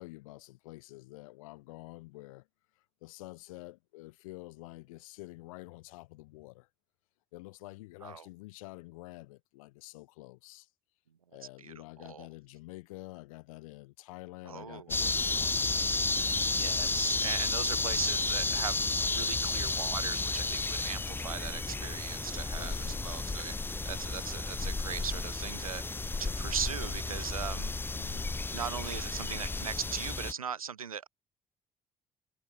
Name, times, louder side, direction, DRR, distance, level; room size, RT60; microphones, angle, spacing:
voice 1, 0.0-2.5 3.0-6.7 7.3-10.7 11.3-15.8 22.5-23.1 27.9-28.2, left 21 dB, 75° left, 5.4 m, -48 dB
voice 2, 11.6-12.3 14.4-15.0 16.5-25.8 26.2-27.7 28.5-31.1, right 7 dB, 90° right, 1.0 m, -39 dB
sound 1, 14.9-30.3, left 3 dB, 10° left, 0.4 m, -32 dB
figure-of-eight pair, 45°, 18 cm